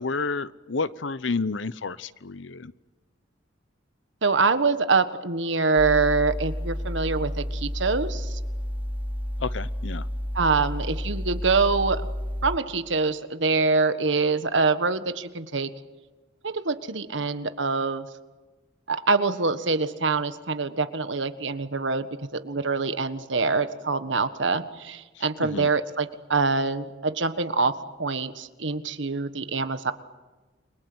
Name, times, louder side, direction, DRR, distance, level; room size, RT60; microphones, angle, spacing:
voice 1, 0.0-2.7 9.4-10.1 25.2-25.7, left 4 dB, 85° left, 17 dB, 0.9 m, -30 dB
voice 2, 4.2-8.4 10.3-12.0 12.4-15.7 16.4-18.1 18.9-22.1 22.3-27.7 28.0-29.9, right 4 dB, 80° right, 11 dB, 1.5 m, -25 dB
sound 1, 5.8-12.6, equal, 10° right, 3.0 m, -31 dB
29.5 x 23.0 x 8.0 m, 1.2 s
head